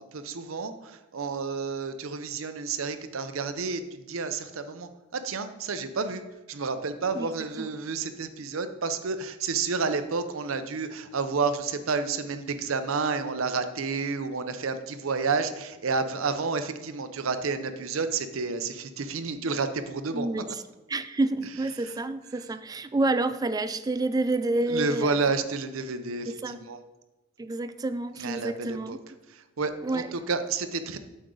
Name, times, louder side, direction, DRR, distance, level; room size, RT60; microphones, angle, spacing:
voice 1, 0.0-6.2 6.5-20.3 21.8-21.9 24.7-26.8 28.2-29.0 29.3-31.0, right 4 dB, 85° right, 9 dB, 0.7 m, -30 dB
voice 2, 20.1-20.6 20.9-25.2 26.3-26.6 27.4-29.0 29.8-30.1, right 2 dB, 20° right, 11 dB, 0.4 m, -29 dB
8.8 x 6.3 x 3.8 m, 1.1 s
head